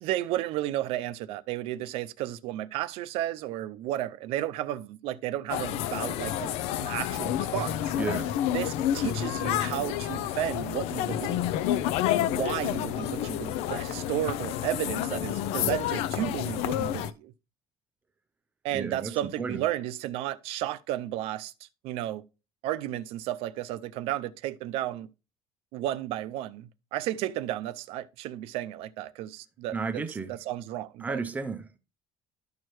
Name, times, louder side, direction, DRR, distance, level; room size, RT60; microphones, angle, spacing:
voice 1, 0.0-6.5 6.8-7.9 8.5-11.4 12.1-17.3 18.6-22.2 22.6-25.1 25.7-31.2, right 13 dB, 70° right, 0.5 m, -33 dB
sound 1, 5.5-17.1, left 11 dB, 75° left, 0.5 m, -29 dB
voice 2, 8.0-8.3 18.7-19.6 29.7-30.3 31.0-31.8, right 4 dB, 15° right, 0.5 m, -33 dB
12.5 x 4.5 x 3.1 m
cardioid pair, 165°, 10 cm